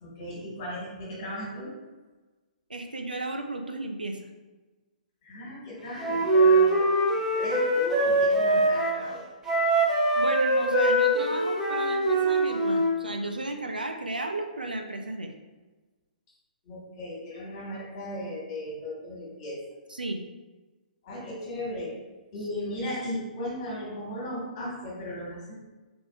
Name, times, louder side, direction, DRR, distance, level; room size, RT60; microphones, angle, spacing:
voice 1, 0.0-1.7 5.2-9.2 16.6-19.6 21.0-21.9 22.3-25.6, left 1 dB, 35° left, -5 dB, 1.4 m, -36 dB
voice 2, 2.7-4.2 10.2-15.3 19.9-20.2, right 2 dB, 80° right, 4 dB, 0.4 m, -34 dB
Wind instrument woodwind instrument, 6.0-9.0 9.4-12.9, right 1 dB, 10° right, 0.7 m, -23 dB
3.7 x 3.4 x 2.3 m, 1.2 s
figure-of-eight pair, 125°, 5 cm